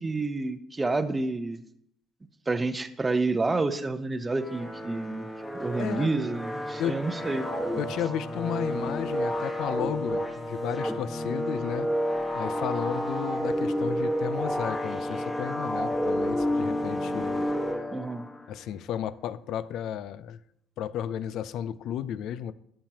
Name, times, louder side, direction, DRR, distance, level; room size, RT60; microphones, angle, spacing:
voice 1, 0.0-1.6 2.5-5.2 5.6-7.5 17.9-18.3, right 3 dB, 20° right, 0.7 m, -29 dB
sound 1, 4.3-18.5, equal, 10° left, 1.3 m, -30 dB
voice 2, 5.8-6.1 6.8-7.0 7.8-11.9 12.3-17.5 18.5-20.4 20.8-22.5, left 10 dB, 65° left, 0.4 m, -33 dB
12.0 x 7.5 x 2.9 m
cardioid pair, 110°, 0 cm